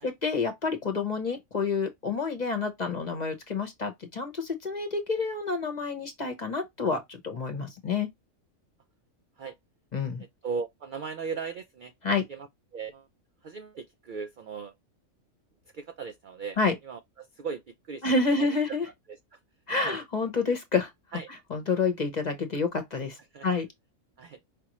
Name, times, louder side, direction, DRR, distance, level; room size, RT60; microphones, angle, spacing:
voice 1, 0.0-8.1 9.9-10.2 12.0-12.2 16.6-16.7 18.0-18.9 19.7-20.9 21.5-23.2 23.4-23.7, left 4 dB, 35° left, 0.9 m, -28 dB
voice 2, 10.4-11.9 12.3-13.1 13.4-14.7 15.7-16.6 16.8-18.0 18.3-18.5 19.1-19.4 19.8-20.0 21.1-21.3 23.3-23.6 24.2-24.4, right 5 dB, 65° right, 0.5 m, -38 dB
5.1 x 2.6 x 2.9 m
omnidirectional pair, 1.4 m